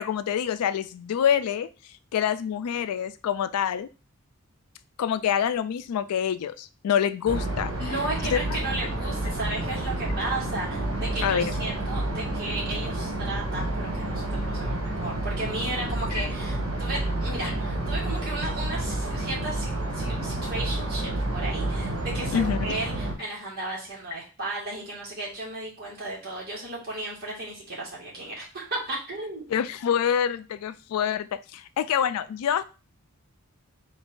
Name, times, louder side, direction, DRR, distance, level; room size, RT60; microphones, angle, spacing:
voice 1, 0.0-1.7 2.1-3.9 5.0-7.7 8.3-8.6 11.2-11.5 17.4-17.5 22.3-22.6 29.5-32.6, left 8 dB, 90° left, 13 dB, 0.3 m, -26 dB
sound 1, 7.3-23.1, right 1 dB, 80° right, 1.2 m, -29 dB
voice 2, 7.8-29.4, right 2 dB, 45° right, -5 dB, 1.8 m, -34 dB
3.9 x 2.5 x 3.6 m, 0.32 s
head